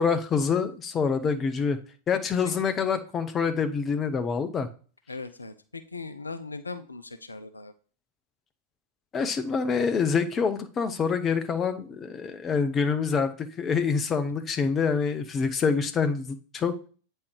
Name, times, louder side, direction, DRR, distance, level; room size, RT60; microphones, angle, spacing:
voice 1, 0.0-1.8 2.1-4.7 9.1-16.9, left 5 dB, 25° left, 10 dB, 0.7 m, -26 dB
voice 2, 5.1-7.7, left 3 dB, 80° left, 9 dB, 0.4 m, -39 dB
8.5 x 3.2 x 4.7 m, 0.39 s
figure-of-eight pair, 90°, 0 cm